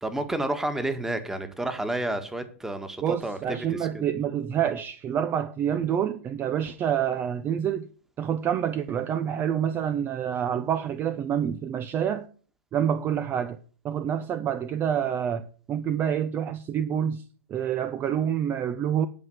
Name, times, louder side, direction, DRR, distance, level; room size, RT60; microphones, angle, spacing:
voice 1, 0.0-3.6 3.9-4.0, right 1 dB, 5° right, 1.8 m, -30 dB
voice 2, 3.0-7.9 8.2-12.3 12.7-13.6 13.8-19.1, right 9 dB, 30° right, 0.8 m, -27 dB
11.0 x 5.8 x 8.1 m
hypercardioid pair, 105°, 7 cm